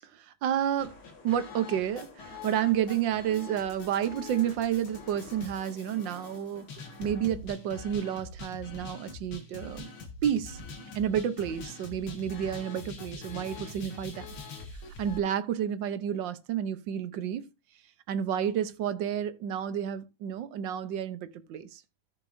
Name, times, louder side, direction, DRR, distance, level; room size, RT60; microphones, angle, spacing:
voice 1, 0.4-1.0 1.2-6.7 7.0-9.9 10.2-10.6 10.9-14.3 15.0-17.5 18.1-21.8, right 9 dB, 65° right, 1.5 m, -30 dB
sound 1, 0.8-15.2, left 4 dB, 85° left, 2.7 m, -44 dB
14.0 x 6.8 x 2.6 m
omnidirectional pair, 2.3 m